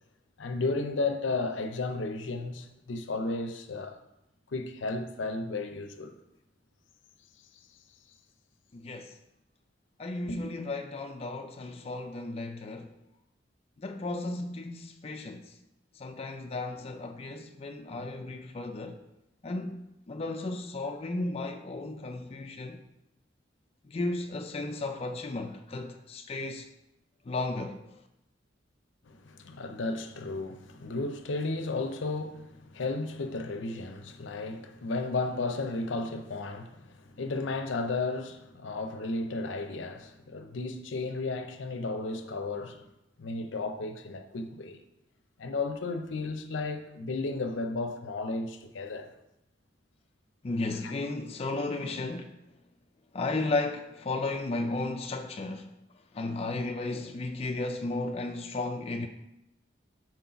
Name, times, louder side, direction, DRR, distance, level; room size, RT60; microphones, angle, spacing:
voice 1, 0.4-4.0 4.5-6.2 10.2-10.5 29.1-42.8 43.2-44.8 45.4-49.1 50.8-50.9, left 3 dB, 80° left, 0.6 m, -34 dB
voice 2, 8.7-9.2 10.0-12.9 13.8-15.5 16.0-19.0 19.4-22.8 23.9-26.7 27.3-28.0 50.4-52.3 53.1-55.7 56.1-59.1, left 2 dB, 30° left, 0.4 m, -34 dB
4.5 x 3.9 x 5.7 m
head